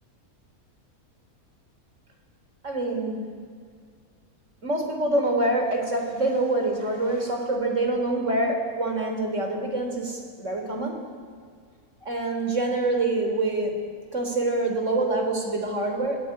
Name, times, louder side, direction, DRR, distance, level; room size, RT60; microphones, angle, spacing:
voice 1, 2.6-3.3 4.6-11.0 12.0-13.8 14.1-16.2, right 2 dB, 55° right, 3 dB, 4.1 m, -26 dB
26.5 x 20.5 x 8.7 m, 2.1 s
omnidirectional pair, 1.6 m